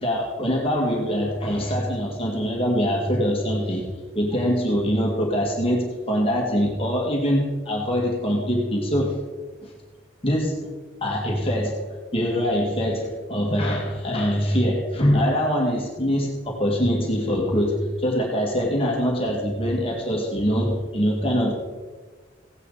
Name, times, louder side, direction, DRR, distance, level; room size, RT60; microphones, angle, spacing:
voice 1, 0.0-3.8 4.1-9.2 9.6-9.7 10.2-10.7 11.0-11.9 12.1-21.5, equal, 30° left, -2 dB, 1.9 m, -23 dB
17.0 x 9.9 x 4.0 m, 1.4 s
head